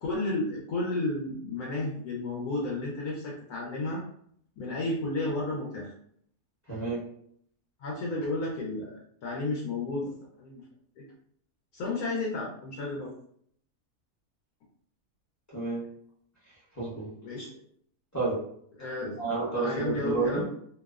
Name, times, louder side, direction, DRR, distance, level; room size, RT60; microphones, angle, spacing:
voice 1, 0.0-4.0 4.6-5.9 7.8-8.9 9.2-10.6 11.7-13.1 17.2-17.5 18.8-19.2 19.6-20.4, left 2 dB, 75° left, -4 dB, 1.1 m, -32 dB
voice 2, 6.7-7.0 15.5-15.8 16.7-17.1 18.1-18.4 19.2-20.4, right 3 dB, 20° left, -8 dB, 0.5 m, -30 dB
2.8 x 2.0 x 2.3 m, 0.66 s
omnidirectional pair, 1.6 m